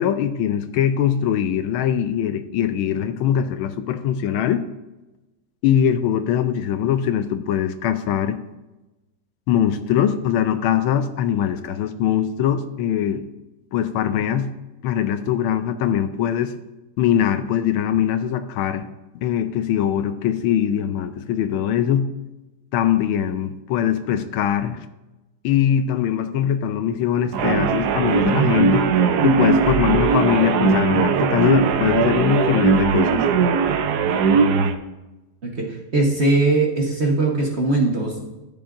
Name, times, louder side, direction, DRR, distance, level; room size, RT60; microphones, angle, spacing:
voice 1, 0.0-4.6 5.6-8.4 9.5-13.2 13.7-14.5 14.8-16.5 17.0-18.9 19.2-22.1 22.7-24.8 25.4-28.9 29.2-33.2, left 9 dB, 80° left, 10 dB, 1.4 m, -21 dB
sound 1, 27.3-34.7, right 5 dB, 70° right, 0.9 m, -19 dB
voice 2, 35.4-38.2, right 2 dB, 40° right, -1 dB, 1.2 m, -20 dB
14.0 x 7.1 x 2.6 m, 1.0 s
omnidirectional pair, 2.3 m